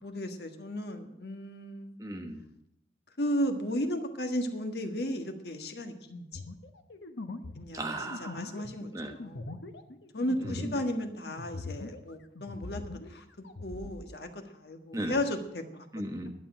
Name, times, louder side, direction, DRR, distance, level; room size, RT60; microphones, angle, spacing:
voice 1, 0.0-2.0 3.2-6.4 7.5-7.9 8.2-9.5 10.1-13.2 13.6-15.9, equal, 65° left, 5 dB, 1.5 m, -34 dB
voice 2, 2.0-2.5 7.7-8.6 8.9-9.1 10.4-10.8 14.9-15.2 15.9-16.3, right 1 dB, 20° right, 4 dB, 1.2 m, -36 dB
sound 1, 6.3-12.1 12.4-14.0, left 2 dB, 85° left, 1.0 m, -42 dB
11.5 x 7.6 x 8.9 m, 0.78 s
head